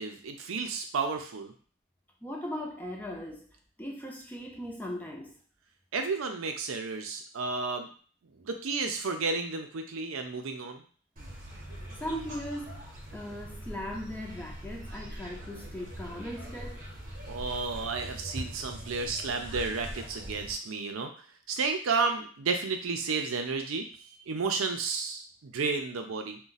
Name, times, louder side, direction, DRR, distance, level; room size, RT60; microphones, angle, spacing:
voice 1, 0.0-1.5 5.9-7.9 8.4-10.8 17.3-26.4, right 4 dB, 80° right, 5 dB, 0.5 m, -32 dB
voice 2, 2.2-3.5 3.8-5.4 12.0-12.8 13.1-16.8, equal, 10° left, -1 dB, 0.5 m, -38 dB
sound 1, 11.2-20.5, equal, 40° right, 0.8 m, -42 dB
2.5 x 2.2 x 3.9 m, 0.42 s
head